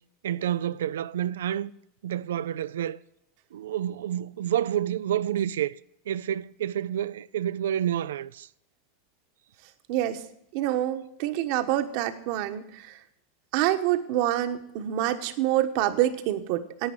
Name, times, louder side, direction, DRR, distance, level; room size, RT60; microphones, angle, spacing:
voice 1, 0.2-1.7 2.0-3.0 3.5-5.8 6.1-8.5, right 11 dB, 90° right, 0.4 m, -29 dB
voice 2, 9.9-10.2 10.5-13.0 13.5-16.9, right 13 dB, 60° right, 1.2 m, -26 dB
11.0 x 8.8 x 8.6 m
supercardioid pair, 130°, 0 cm